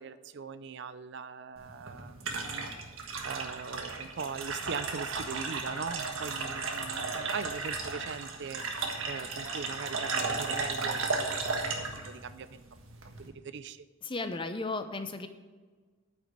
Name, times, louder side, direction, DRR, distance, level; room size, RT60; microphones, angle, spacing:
voice 1, 0.0-2.6 3.2-8.6 9.1-12.6 13.2-13.9, right 5 dB, 55° right, 14 dB, 0.5 m, -41 dB
sound 1, 1.6-13.3, right 4 dB, 75° right, 1.5 m, -35 dB
voice 2, 14.0-15.3, left 3 dB, 25° left, 8 dB, 0.7 m, -35 dB
9.2 x 6.2 x 8.5 m, 1.4 s
head